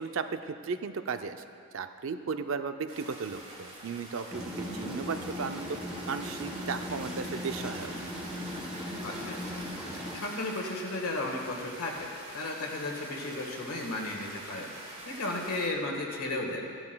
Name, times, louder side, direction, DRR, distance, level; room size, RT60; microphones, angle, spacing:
voice 1, 0.0-1.4 1.7-5.8 6.1-7.9, right 5 dB, 60° right, 8 dB, 0.4 m, -35 dB
sound 1, 2.9-15.7, right 1 dB, 30° right, 1.5 m, -45 dB
sound 2, 4.3-10.2, left 1 dB, 5° right, 0.8 m, -38 dB
voice 2, 4.6-5.0 9.0-16.7, left 2 dB, 85° left, 0 dB, 1.5 m, -35 dB
14.5 x 12.0 x 2.3 m, 2.3 s
head